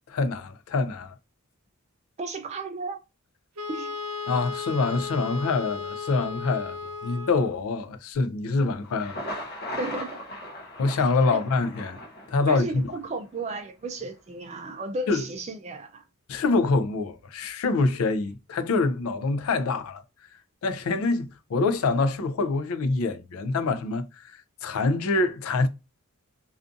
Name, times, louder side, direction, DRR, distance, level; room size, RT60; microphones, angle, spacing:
voice 1, 0.1-1.1 4.3-6.8 7.0-9.2 10.8-12.0 12.3-12.6 15.1-15.2 16.3-20.0 20.6-25.7, left 3 dB, 75° left, 0.4 m, -25 dB
voice 2, 2.2-3.0 3.7-4.0 9.8-10.2 11.3-11.4 12.5-16.0, right 2 dB, 30° right, 0.3 m, -34 dB
Wind instrument woodwind instrument, 3.6-7.6, left 5 dB, 85° right, 0.6 m, -35 dB
Thunder, 8.8-12.8, left 1 dB, 45° left, 0.7 m, -38 dB
2.5 x 2.4 x 2.4 m
head